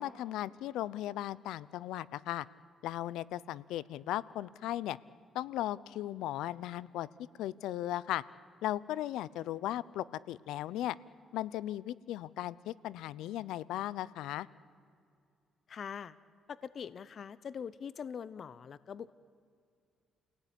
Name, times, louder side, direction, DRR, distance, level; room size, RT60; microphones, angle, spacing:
voice 1, 0.0-2.5 2.8-5.0 5.3-7.1 7.4-8.2 8.6-11.0 11.3-14.5, left 13 dB, 90° left, 20 dB, 0.6 m, -37 dB
voice 2, 15.7-16.2 16.5-19.1, left 7 dB, 55° left, 17 dB, 0.7 m, -43 dB
29.0 x 17.5 x 10.0 m, 2.4 s
cardioid pair, 90°, 0 cm